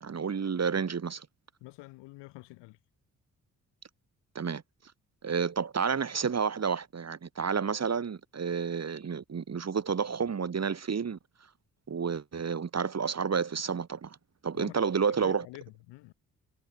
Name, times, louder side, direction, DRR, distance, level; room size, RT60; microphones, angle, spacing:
voice 1, 0.0-1.3 4.4-4.6 5.2-11.2 11.9-14.2 14.4-15.5, right 6 dB, 40° right, 1.9 m, -30 dB
voice 2, 1.6-2.8 14.6-16.1, left 22 dB, 80° left, 4.7 m, -47 dB
hypercardioid pair, 45°, 42 cm